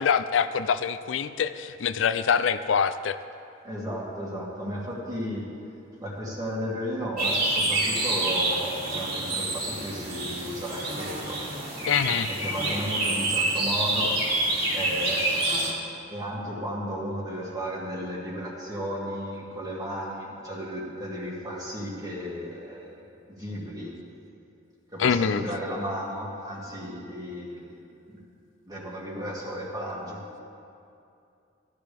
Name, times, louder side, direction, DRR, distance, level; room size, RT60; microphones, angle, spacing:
voice 1, 0.0-3.2 11.9-12.3 25.0-25.4, left 7 dB, 85° left, 11 dB, 0.4 m, -24 dB
voice 2, 3.6-5.5 6.0-11.4 12.3-14.2 14.7-15.8 16.1-23.1 23.4-23.9 24.9-28.2 28.7-30.2, equal, 20° right, -5 dB, 2.4 m, -34 dB
sound 1, 7.2-15.7, right 2 dB, 55° right, 3.0 m, -27 dB
15.5 x 13.5 x 3.5 m, 2.6 s
head